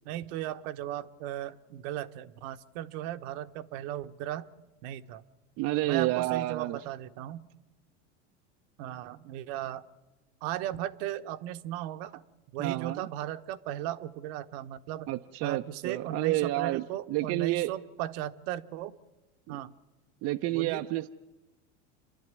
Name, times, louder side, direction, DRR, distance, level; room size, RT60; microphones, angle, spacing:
voice 1, 0.0-4.4 4.8-5.2 5.8-7.5 8.8-9.8 10.4-12.2 12.5-15.1 15.4-18.9 19.5-19.7 20.5-20.8, right 12 dB, 65° right, 10 dB, 1.1 m, -36 dB
voice 2, 5.6-6.8 12.6-13.1 15.1-16.8 17.1-17.7 19.5-19.6 20.2-21.1, right 16 dB, 45° right, 6 dB, 0.7 m, -29 dB
28.5 x 11.5 x 9.6 m, 1.1 s
supercardioid pair, 110°, 34 cm